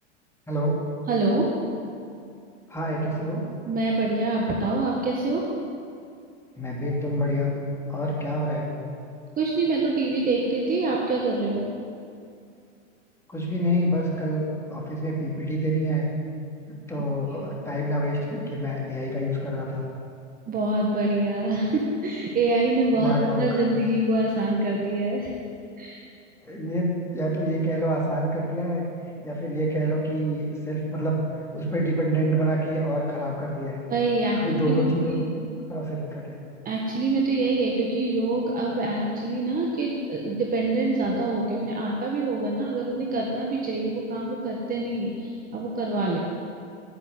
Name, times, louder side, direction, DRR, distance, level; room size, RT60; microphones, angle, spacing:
voice 1, 1.1-1.5 3.6-5.5 9.4-11.6 17.4-17.6 20.5-25.3 25.8-26.0 33.9-35.5 36.6-46.2, right 2 dB, 25° right, -1 dB, 1.7 m, -25 dB
voice 2, 2.7-3.4 6.6-7.5 7.9-8.7 13.3-14.4 14.7-16.1 16.7-19.8 23.0-23.4 26.4-26.9 27.1-28.9 29.2-31.2 31.5-33.8 34.4-35.2 35.7-36.4, right 1 dB, 5° left, -3 dB, 3.0 m, -27 dB
10.0 x 9.9 x 9.5 m, 2.4 s
hypercardioid pair, 120°, 37 cm